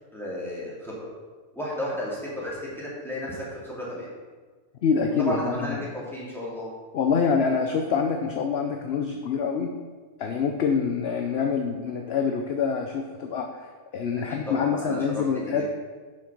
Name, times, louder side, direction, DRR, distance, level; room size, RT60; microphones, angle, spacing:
voice 1, 0.1-0.9 1.5-4.1 5.0-6.7 14.3-15.6, equal, ahead, -7 dB, 2.8 m, -33 dB
voice 2, 4.8-5.8 6.9-9.7 10.2-15.6, left 6 dB, 55° left, 4 dB, 0.8 m, -26 dB
7.5 x 6.2 x 5.9 m, 1.4 s
omnidirectional pair, 1.5 m